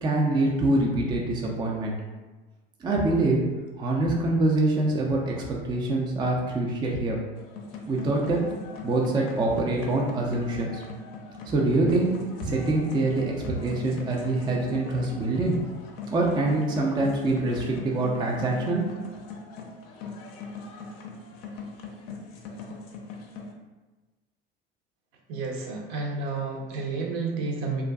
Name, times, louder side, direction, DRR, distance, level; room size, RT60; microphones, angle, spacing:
voice 1, 0.0-1.9 2.8-3.4 3.8-7.2 7.9-8.4 8.8-10.8 11.5-12.1 12.4-15.6 16.1-18.8, right 2 dB, 15° right, -1 dB, 0.3 m, -25 dB
sound 1, 7.4-23.5, left 3 dB, 55° left, 0.5 m, -41 dB
voice 2, 25.3-27.8, right 4 dB, 60° right, 0 dB, 0.7 m, -31 dB
2.4 x 2.3 x 2.3 m, 1.2 s
hypercardioid pair, 75°, 30 cm